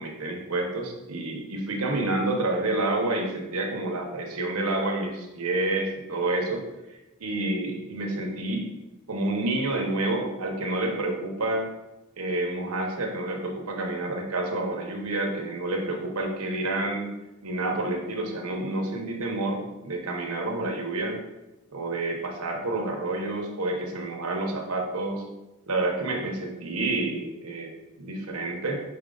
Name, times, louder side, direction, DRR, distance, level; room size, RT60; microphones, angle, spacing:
voice 1, 0.0-6.6 6.9-8.7 9.1-11.7 12.2-17.1 17.4-21.2 21.7-25.2 25.7-28.8, right 2 dB, 85° right, 1 dB, 1.1 m, -29 dB
5.6 x 4.8 x 3.9 m, 0.99 s
head